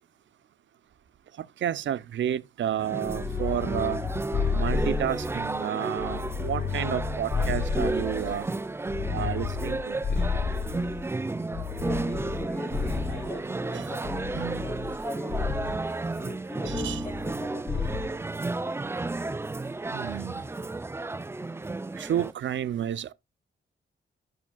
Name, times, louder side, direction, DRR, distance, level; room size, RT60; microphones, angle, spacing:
voice 1, 1.4-4.0 4.5-8.5 9.1-10.0 13.7-13.9 14.4-14.7 16.7-17.0 19.9-20.4 22.0-23.1, right 10 dB, 75° right, 0.5 m, -31 dB
sound 1, 2.8-22.3, right 2 dB, 10° right, 0.4 m, -33 dB
sound 2, 3.1-5.5 6.0-8.4 8.9-11.1 11.5-13.4 14.0-15.0 15.3-15.8 16.7-17.4 17.7-18.1, left 6 dB, 60° left, 1.0 m, -31 dB
voice 2, 11.8-14.3 14.6-15.7 16.1-17.9, left 1 dB, 5° left, 5.1 m, -40 dB
11.0 x 7.4 x 2.3 m
wide cardioid pair, 115°, 20 cm